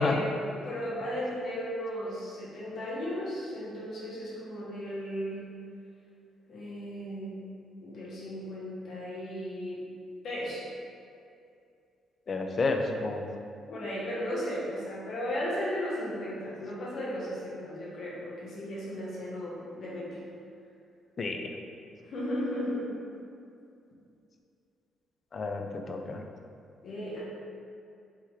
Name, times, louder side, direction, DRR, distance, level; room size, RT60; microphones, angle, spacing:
voice 1, 0.0-5.4 6.5-7.4 7.8-9.8 10.2-10.6 13.7-20.2 22.0-22.9 26.8-27.2, equal, 60° left, -7 dB, 1.1 m, -35 dB
voice 2, 12.3-13.2 21.2-21.5 25.3-26.2, left 3 dB, 45° left, 4 dB, 0.4 m, -30 dB
4.7 x 3.4 x 3.1 m, 2.5 s
cardioid pair, 90°, 0 cm